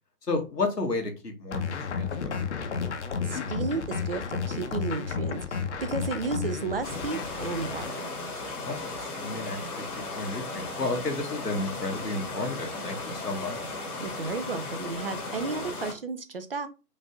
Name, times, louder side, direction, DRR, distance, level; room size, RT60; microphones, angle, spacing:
voice 1, 0.2-2.9 8.6-13.7, left 3 dB, 85° left, 3 dB, 1.6 m, -33 dB
sound 1, 1.5-7.9, left 6 dB, 45° left, 0.8 m, -32 dB
voice 2, 3.2-8.1 14.0-16.7, right 4 dB, 40° right, 10 dB, 0.5 m, -33 dB
sound 2, 6.8-15.9, left 3 dB, 70° left, 1.6 m, -36 dB
5.2 x 2.6 x 3.5 m, 0.30 s
figure-of-eight pair, 135°, 47 cm